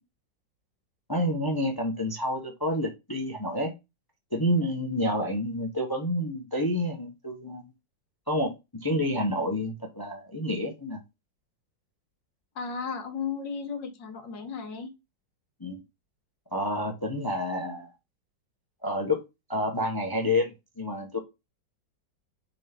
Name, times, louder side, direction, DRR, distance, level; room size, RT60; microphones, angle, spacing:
voice 1, 1.1-3.7 4.3-7.6 8.3-11.0 15.6-15.8 16.5-17.9 18.8-19.2 19.5-21.2, left 1 dB, 15° left, 0.8 m, -29 dB
voice 2, 12.6-14.9, left 5 dB, 80° left, 1.9 m, -34 dB
6.4 x 4.1 x 3.5 m
omnidirectional pair, 2.0 m